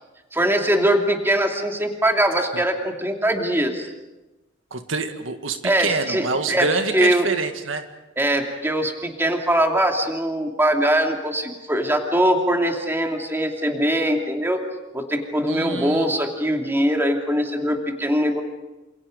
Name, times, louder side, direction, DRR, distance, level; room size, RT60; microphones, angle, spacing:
voice 1, 0.3-3.9 5.6-6.7 6.9-7.3 8.2-14.6 14.9-18.4, right 1 dB, 10° right, 2 dB, 2.7 m, -22 dB
voice 2, 4.7-7.8 15.5-16.1, right 4 dB, 85° right, 7 dB, 1.8 m, -26 dB
28.0 x 27.5 x 5.2 m, 1.1 s
head